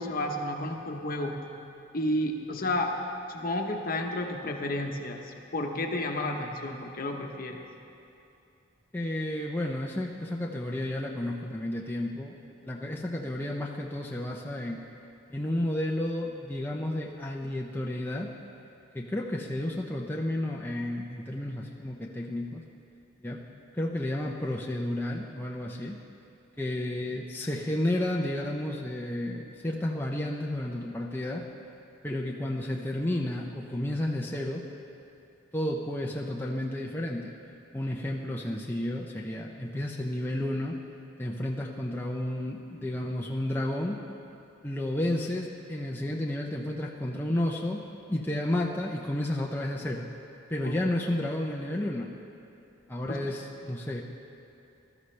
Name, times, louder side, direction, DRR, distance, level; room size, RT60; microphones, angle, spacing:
voice 1, 0.0-1.4 1.9-2.9 3.3-7.6 48.1-48.3 50.6-50.8 53.1-53.3, left 1 dB, 45° left, 2 dB, 1.0 m, -31 dB
voice 2, 8.9-12.4 12.6-14.8 15.3-18.3 18.9-22.6 23.2-23.4 23.8-26.0 26.6-31.5 32.0-34.6 35.5-37.3 37.7-40.8 41.2-44.0 44.6-47.8 48.1-50.0 50.5-52.1 52.9-54.0, left 1 dB, 10° left, -2 dB, 0.6 m, -31 dB
20.0 x 13.0 x 3.3 m, 2.7 s
head